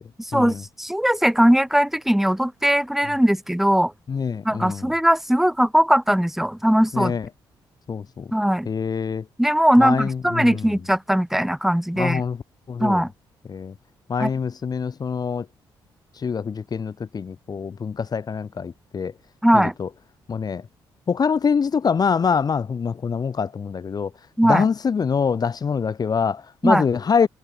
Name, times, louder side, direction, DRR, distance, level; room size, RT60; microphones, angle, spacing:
voice 1, 0.2-3.9 4.4-7.1 8.3-8.7 9.4-12.2 12.8-13.1 14.2-14.3 19.4-19.7 24.4-24.7 26.6-26.8, equal, 5° right, 2.2 m, -19 dB
voice 2, 4.1-4.9 6.9-7.3 7.9-8.3 8.6-9.2 9.8-10.8 12.0-12.4 12.7-13.1 13.5-13.7 14.1-15.5 16.1-19.1 19.5-19.9 20.3-20.6 21.1-24.1 24.4-27.3, left 6 dB, 45° left, 4.9 m, -25 dB
cardioid pair, 75°, 9 cm